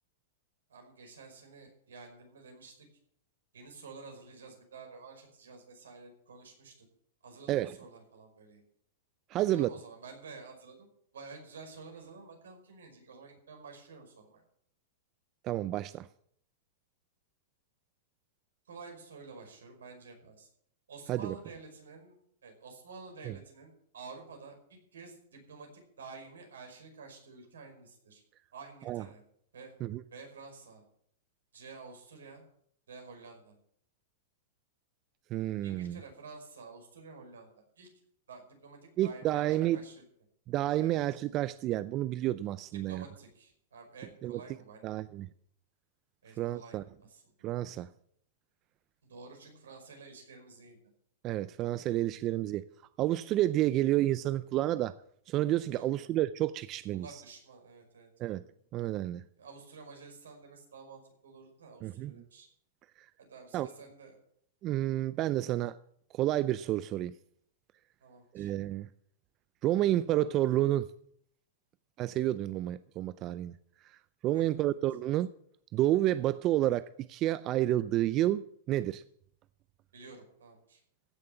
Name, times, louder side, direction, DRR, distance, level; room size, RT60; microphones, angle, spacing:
voice 1, 0.7-2.9 3.5-6.9 7.2-8.6 9.5-10.9 11.1-14.4 18.7-20.5 20.9-25.7 26.0-28.2 28.5-29.2 29.5-29.8 30.1-30.8 31.5-32.4 32.9-33.5 35.6-37.9 38.3-40.1 40.8-41.0 42.7-44.9 46.2-47.3 49.0-50.8 55.7-55.8 56.9-58.4 59.4-62.5 63.2-64.2 68.0-68.5 74.3-74.7 79.9-80.8, right 4 dB, 85° right, 5.2 m, -50 dB
voice 2, 9.3-9.7 15.4-16.1 21.1-21.3 23.2-23.3 28.9-29.0 29.8-30.0 35.3-36.0 39.0-39.8 40.5-43.0 44.2-44.4 44.8-45.3 46.4-46.8 47.4-47.9 51.2-52.6 53.0-55.0 55.3-57.2 58.2-58.4 58.7-59.2 61.8-62.1 63.5-63.7 64.6-65.8 66.1-67.2 68.3-68.9 69.6-70.9 72.0-73.5 73.8-74.0 74.2-75.3 75.7-79.0, right 14 dB, 35° right, 0.5 m, -30 dB
15.5 x 7.0 x 7.9 m
hypercardioid pair, 120°, 0 cm